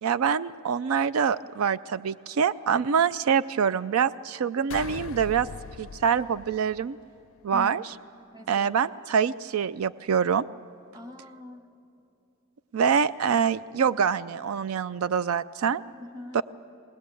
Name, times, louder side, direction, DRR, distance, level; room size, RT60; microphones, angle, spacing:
voice 1, 0.0-5.5 5.8-7.0 7.4-7.8 8.5-10.5 12.7-15.8 16.3-16.4, right 7 dB, 85° right, 16 dB, 0.4 m, -25 dB
sound 1, 4.7-7.3, left 5 dB, 65° left, 0.4 m, -41 dB
voice 2, 7.5-7.8 8.3-8.7 10.9-11.9 15.9-16.4, left 1 dB, 20° right, 6 dB, 1.2 m, -42 dB
20.5 x 19.5 x 8.2 m, 2.7 s
head